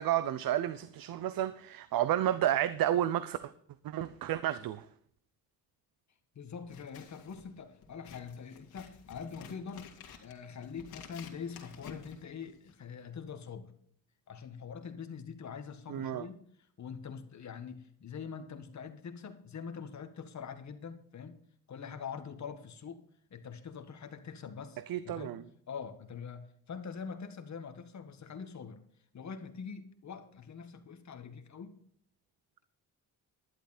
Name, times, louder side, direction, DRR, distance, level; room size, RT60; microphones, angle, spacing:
voice 1, 0.0-3.4 3.8-4.8 15.9-16.2 24.9-25.4, right 12 dB, 70° right, 0.7 m, -31 dB
voice 2, 6.3-13.7 14.3-16.4 16.8-21.4 21.7-23.0 23.3-28.8 29.1-31.7, left 6 dB, 50° left, 1.8 m, -44 dB
Scissors, 6.6-12.9, left 6 dB, 80° left, 2.6 m, -52 dB
11.5 x 11.0 x 4.3 m
cardioid pair, 110°, 36 cm